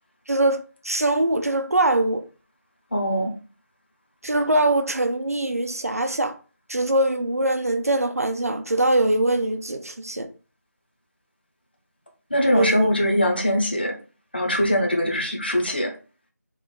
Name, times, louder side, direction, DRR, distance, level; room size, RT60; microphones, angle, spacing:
voice 1, 0.3-0.6 0.8-2.2 4.2-6.3 6.7-10.3 12.5-12.9, right 1 dB, 60° right, 0.6 m, -22 dB
voice 2, 2.9-3.3 12.3-13.9 14.3-15.9, equal, 35° left, 0.8 m, -22 dB
3.1 x 2.4 x 3.7 m
figure-of-eight pair, 180°, 9 cm